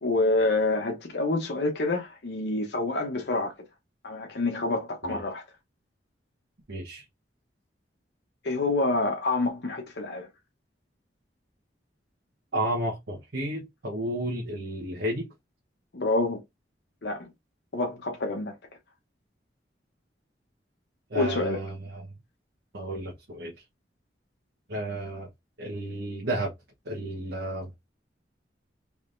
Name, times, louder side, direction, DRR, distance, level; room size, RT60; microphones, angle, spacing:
voice 1, 0.0-3.5 4.0-5.4 8.4-10.3 15.9-16.4 17.0-17.3 17.7-18.6 21.1-21.6, left 2 dB, 75° left, 0.8 m, -27 dB
voice 2, 6.7-7.0 12.5-15.3 21.1-22.0 22.7-23.5 24.7-25.3 25.6-26.5 26.9-27.7, right 1 dB, 80° right, 1.1 m, -32 dB
3.6 x 3.3 x 2.5 m
head